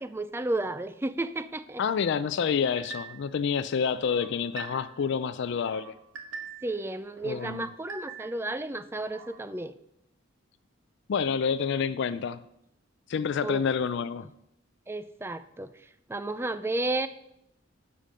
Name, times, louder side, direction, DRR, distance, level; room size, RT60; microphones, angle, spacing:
voice 1, 0.0-1.8 6.6-9.7 13.4-13.6 14.9-15.7 16.1-17.1, right 2 dB, 10° right, 12 dB, 0.4 m, -32 dB
voice 2, 1.8-5.9 7.2-7.7 11.1-12.4 13.1-14.3, left 6 dB, 65° left, 14 dB, 0.4 m, -28 dB
sound 1, 2.8-3.3 3.8-5.1 5.4-6.8 7.2-8.5 8.9-9.4, right 5 dB, 80° right, 1.4 m, -44 dB
11.5 x 5.1 x 5.2 m, 0.79 s
head